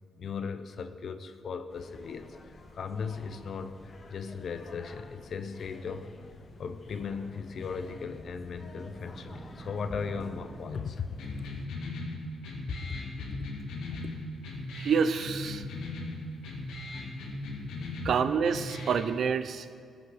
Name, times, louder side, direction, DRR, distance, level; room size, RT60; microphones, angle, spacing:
voice 1, 0.1-6.1 6.6-11.2 13.9-14.0, left 5 dB, 60° left, 10 dB, 0.8 m, -37 dB
sound 1, 1.7-11.7, left 3 dB, 45° left, 1.1 m, -50 dB
sound 2, 7.6-11.4, right 3 dB, 45° right, 0.9 m, -49 dB
sound 3, 11.2-19.2, left 2 dB, 80° left, 1.8 m, -38 dB
voice 2, 14.7-15.7 18.0-19.8, right 6 dB, 70° right, 12 dB, 0.5 m, -28 dB
16.0 x 5.8 x 6.2 m, 2.2 s
supercardioid pair, 60°, 0 cm